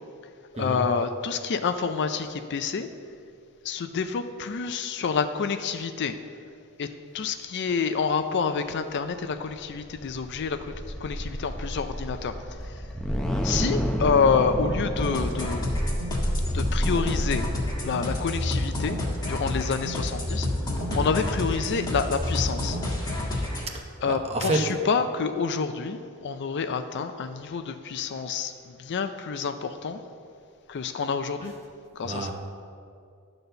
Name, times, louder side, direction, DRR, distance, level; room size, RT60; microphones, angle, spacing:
voice 1, 0.6-2.9 3.6-6.1 6.8-6.9 7.1-10.7 11.0-12.8 13.4-15.8 16.5-17.5 17.8-20.5 20.7-22.8 24.0-30.0 30.7-31.5 31.9-32.3, left 5 dB, 50° left, 9 dB, 0.4 m, -28 dB
sound 1, 9.6-17.8, equal, 5° left, 0.7 m, -30 dB
sound 2, 15.0-23.6, left 1 dB, 20° left, 1.4 m, -29 dB
voice 2, 23.7-24.7 32.0-32.3, right 2 dB, 30° right, 2 dB, 0.9 m, -29 dB
11.0 x 4.0 x 6.8 m, 2.4 s
head